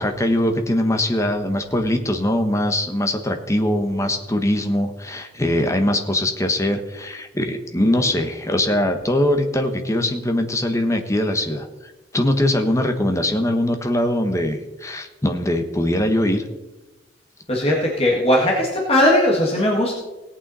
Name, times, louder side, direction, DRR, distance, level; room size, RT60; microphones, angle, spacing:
voice 1, 0.0-16.4, left 1 dB, 15° left, 6 dB, 1.1 m, -22 dB
voice 2, 17.5-19.9, left 1 dB, 30° left, -2 dB, 1.8 m, -18 dB
18.0 x 8.6 x 4.2 m, 1.1 s
head